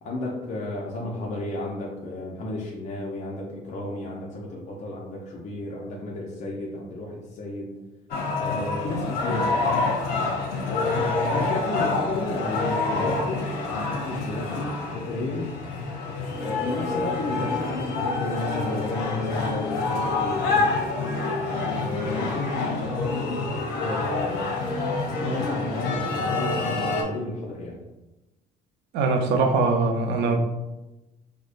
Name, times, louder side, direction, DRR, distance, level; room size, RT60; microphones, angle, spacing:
voice 1, 0.0-7.8 8.3-9.9 10.6-15.5 16.3-20.8 21.7-24.5 25.1-27.8, left 2 dB, 45° left, -3 dB, 0.6 m, -32 dB
sound 1, 8.1-27.0, left 3 dB, 80° left, 0.7 m, -27 dB
voice 2, 28.9-30.4, right 3 dB, 85° right, 4 dB, 0.5 m, -22 dB
4.8 x 2.1 x 2.5 m, 1.0 s
cardioid pair, 110°, 17 cm